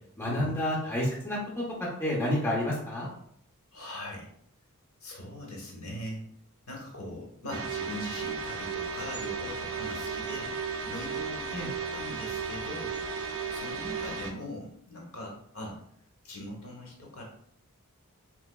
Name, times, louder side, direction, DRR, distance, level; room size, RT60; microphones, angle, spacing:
voice 1, 0.2-1.4 2.0-3.1 11.5-11.7, left 1 dB, 10° left, -5 dB, 0.7 m, -29 dB
voice 2, 3.7-4.3 5.0-6.2 6.7-11.6 11.9-15.8 16.2-17.2, left 1 dB, 70° left, 0 dB, 1.0 m, -41 dB
sound 1, 7.5-14.3, right 5 dB, 65° right, 0.4 m, -35 dB
3.3 x 3.0 x 2.3 m, 0.67 s
head